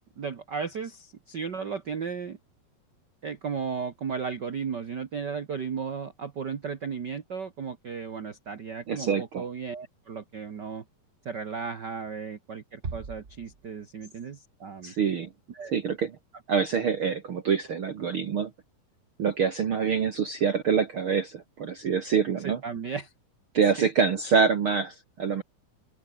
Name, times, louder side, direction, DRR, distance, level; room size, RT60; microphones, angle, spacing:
voice 1, 0.2-2.4 3.2-10.8 11.2-14.9 15.5-15.7 22.4-23.1 23.8-23.9, right 6 dB, 80° right, 0.9 m, -35 dB
voice 2, 8.9-9.4 14.8-15.3 15.7-16.1 16.5-18.5 19.2-22.6 23.5-25.4, right 6 dB, 60° right, 1.4 m, -25 dB
Bass drum, 12.8-14.2, right 4 dB, 30° right, 1.5 m, -40 dB
omnidirectional pair, 4.3 m